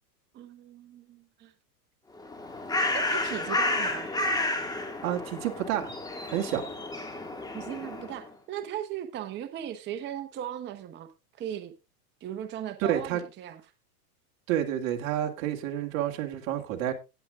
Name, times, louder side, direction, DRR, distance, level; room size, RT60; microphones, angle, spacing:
voice 1, 0.3-1.5 2.9-4.1 7.5-11.1 11.4-11.7 12.2-13.6, right 10 dB, 25° right, 0.9 m, -37 dB
Bird, 2.2-8.2, left 2 dB, 10° left, 1.8 m, -31 dB
voice 2, 5.0-5.9 6.3-6.6 12.8-13.2 14.5-16.9, right 11 dB, 45° right, 2.1 m, -29 dB
18.0 x 8.0 x 2.4 m
supercardioid pair, 135°, 47 cm